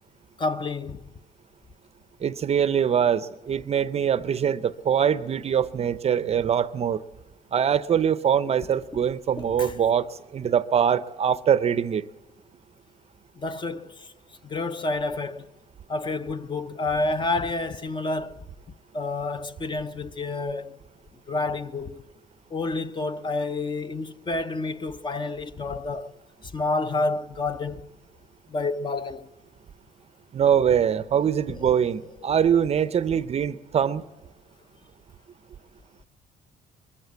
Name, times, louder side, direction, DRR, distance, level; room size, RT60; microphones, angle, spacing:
voice 1, 0.4-1.1 8.9-9.0 9.4-9.7 13.4-14.1 14.4-15.5 15.9-18.4 18.9-20.8 21.3-22.0 22.5-26.1 26.4-27.9 28.5-29.3 31.5-31.7 32.2-32.3, left 3 dB, 30° left, 0.7 m, -29 dB
voice 2, 2.2-7.0 7.5-12.1 30.3-34.0, right 8 dB, 40° right, 0.6 m, -23 dB
22.0 x 14.5 x 8.3 m
cardioid pair, 110°, 17 cm